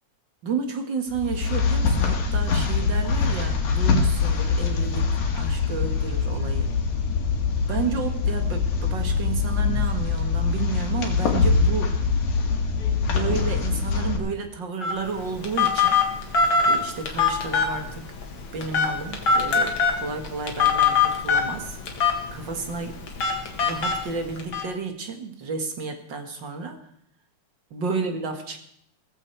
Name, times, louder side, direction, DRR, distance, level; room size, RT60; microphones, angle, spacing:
voice 1, 0.4-6.8 7.7-11.9 13.1-16.0 16.3-18.1 18.5-21.8 22.3-23.0 23.6-26.8 27.7-28.6, right 5 dB, 45° right, 6 dB, 1.8 m, -31 dB
sound 1, 1.1-14.2, left 5 dB, 70° left, 3.4 m, -23 dB
Telephone, 14.8-24.6, left 5 dB, 45° left, 2.3 m, -24 dB
17.0 x 15.0 x 4.5 m, 0.70 s
omnidirectional pair, 3.7 m